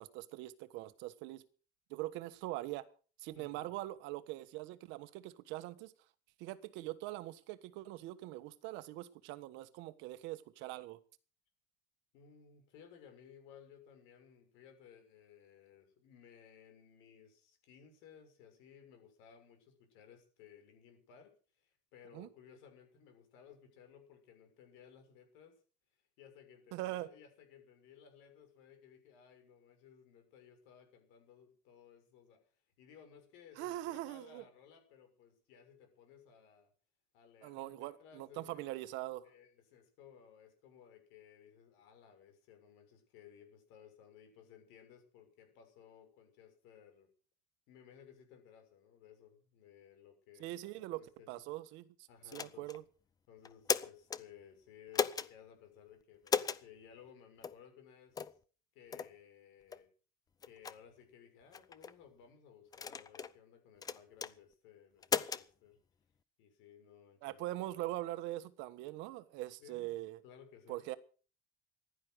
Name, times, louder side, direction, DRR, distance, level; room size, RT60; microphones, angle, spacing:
voice 1, 0.0-1.4 1.9-2.9 3.2-5.9 6.4-11.0 22.1-22.3 26.7-27.1 33.6-34.4 37.4-39.3 50.4-51.0 51.3-51.8 52.3-52.8 67.2-70.2 70.7-71.0, right 16 dB, 65° right, 1.4 m, -42 dB
voice 2, 3.3-3.7 12.1-25.6 26.2-32.4 32.8-36.7 37.1-38.7 39.2-47.1 47.7-50.5 50.9-51.3 52.1-52.7 53.3-58.4 58.7-59.9 60.5-65.8 66.4-67.4 69.0-69.1 69.6-70.0 70.2-70.8, left 8 dB, 70° left, 6.5 m, -59 dB
sound 1, 52.3-52.8 53.4-54.2 54.9-55.3 56.3-56.6 57.4-57.6 58.2-58.4 58.9-59.1 59.7-59.8 60.4-60.8 61.5-61.9 62.7-63.3 63.8-64.3 65.0-65.4, left 6 dB, 20° left, 0.6 m, -35 dB
15.5 x 11.5 x 6.3 m
cardioid pair, 170°, 21 cm